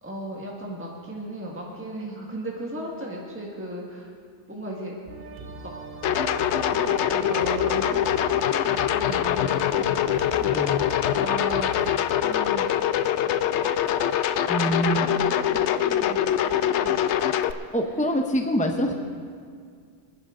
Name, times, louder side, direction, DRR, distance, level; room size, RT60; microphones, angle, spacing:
voice 1, 0.0-4.1 4.5-4.9 5.6-5.7 6.7-9.9 11.2-11.7 12.2-12.7 14.2-17.1 18.8-18.9, right 1 dB, 10° right, -2 dB, 1.6 m, -36 dB
sound 1, 5.1-12.0, right 4 dB, 55° right, 1.1 m, -39 dB
sound 2, 6.0-17.5, left 10 dB, 75° left, 0.9 m, -24 dB
voice 2, 10.4-10.8 14.5-15.1 17.7-18.9, equal, 10° left, 3 dB, 0.4 m, -25 dB
27.0 x 10.0 x 3.8 m, 2.1 s
omnidirectional pair, 1.2 m